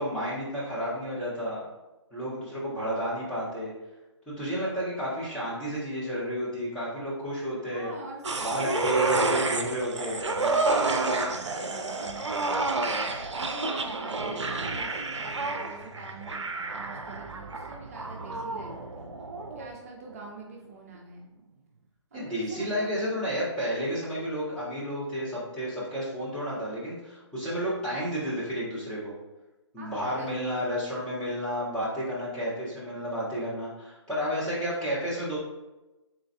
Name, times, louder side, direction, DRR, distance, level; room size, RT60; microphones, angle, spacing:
voice 1, 0.0-1.6 2.1-3.7 4.3-7.9 8.4-10.2 22.1-29.1 29.7-35.4, equal, 5° left, -12 dB, 1.4 m, -31 dB
voice 2, 7.7-8.8 10.2-12.9 13.3-19.1 19.5-21.3 22.1-22.9 29.8-30.4, right 3 dB, 30° right, -1 dB, 0.6 m, -45 dB
sound 1, 8.2-19.8 20.1-20.2, right 3 dB, 70° right, 0.5 m, -30 dB
3.9 x 3.8 x 3.3 m, 1.0 s
figure-of-eight pair, 140°, 16 cm